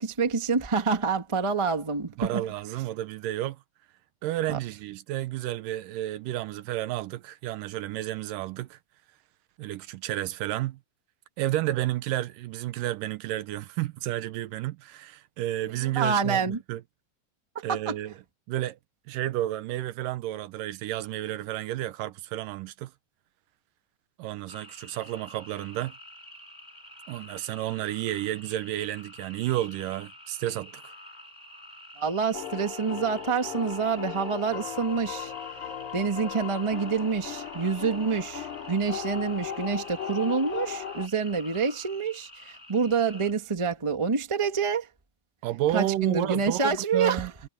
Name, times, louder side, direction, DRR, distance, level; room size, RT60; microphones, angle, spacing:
voice 1, 0.0-2.4 4.5-4.6 15.7-16.6 17.5-17.9 32.0-35.3 35.9-44.9 45.7-47.3, right 5 dB, 35° right, 0.4 m, -27 dB
voice 2, 2.2-3.6 4.2-8.8 9.6-10.8 11.4-16.8 17.6-18.1 18.5-18.8 19.1-22.9 24.2-26.0 27.1-30.9 45.4-47.3, right 14 dB, 80° right, 2.4 m, -31 dB
sound 1, 24.5-43.3, left 1 dB, 10° left, 7.6 m, -48 dB
sound 2, 32.3-41.1, left 7 dB, 65° left, 3.6 m, -37 dB
omnidirectional pair, 3.9 m